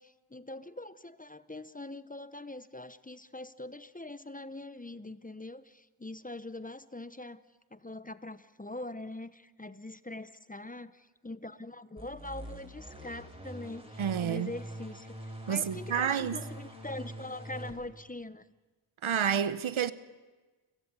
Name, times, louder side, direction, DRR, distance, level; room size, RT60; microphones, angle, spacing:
voice 1, 0.0-7.4 7.7-18.5, left 2 dB, 15° left, 0.8 m, -43 dB
sound 1, 12.0-17.8, right 1 dB, 10° right, 7.3 m, -44 dB
voice 2, 14.0-14.5 15.5-16.4 19.0-19.9, right 8 dB, 70° right, 1.0 m, -29 dB
29.0 x 17.0 x 6.9 m
cardioid pair, 50°, 50 cm